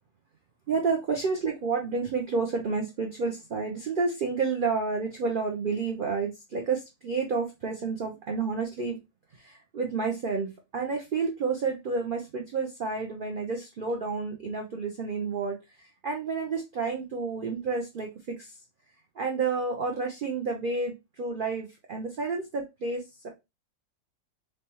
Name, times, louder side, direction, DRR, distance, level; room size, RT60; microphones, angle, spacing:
voice 1, 0.7-9.0 9.3-18.6 19.2-23.3, right 4 dB, 60° right, 2 dB, 0.5 m, -30 dB
3.3 x 3.1 x 2.9 m, 0.23 s
omnidirectional pair, 1.6 m